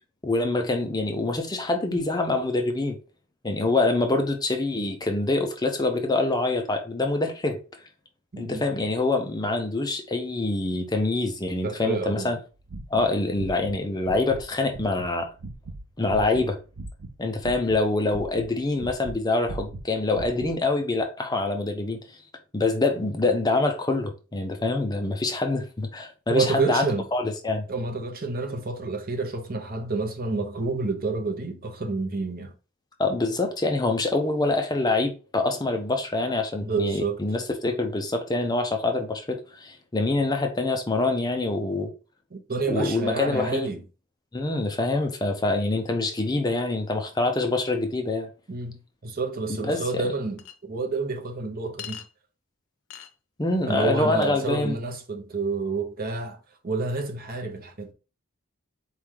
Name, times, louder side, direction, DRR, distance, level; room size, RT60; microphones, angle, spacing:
voice 1, 0.2-3.0 3.4-7.6 8.4-12.4 12.9-15.3 16.0-16.6 17.2-22.0 22.5-26.8 27.1-27.7 33.0-41.9 42.7-43.7 44.3-48.3 49.6-49.8 53.4-54.7, left 2 dB, 20° left, 0.5 m, -25 dB
voice 2, 8.3-8.6 11.6-12.3 26.3-27.0 27.7-32.5 36.6-37.2 42.3-43.8 48.5-52.0 53.7-56.4 56.6-57.9, right 3 dB, 45° right, 0.8 m, -29 dB
sound 1, 12.6-13.8 14.0-14.4 14.7-17.2 17.4-19.2 19.5-20.5, right 2 dB, 90° right, 0.7 m, -38 dB
Chink clink, 50.4-50.5 51.8-52.1 52.9-53.1, left 9 dB, 80° left, 0.7 m, -39 dB
4.3 x 3.1 x 3.6 m
head